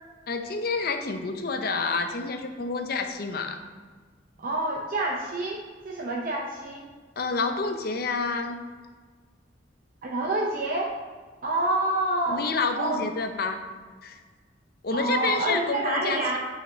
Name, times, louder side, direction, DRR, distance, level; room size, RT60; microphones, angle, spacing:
voice 1, 0.3-3.6 7.2-8.6 12.3-13.6 14.0-14.2 14.8-16.2, left 4 dB, 55° left, 6 dB, 0.6 m, -28 dB
voice 2, 4.4-6.9 10.0-10.9 11.4-12.5 12.8-13.0 14.9-16.4, right 2 dB, 50° right, -2 dB, 0.7 m, -27 dB
8.7 x 5.0 x 2.8 m, 1.5 s
head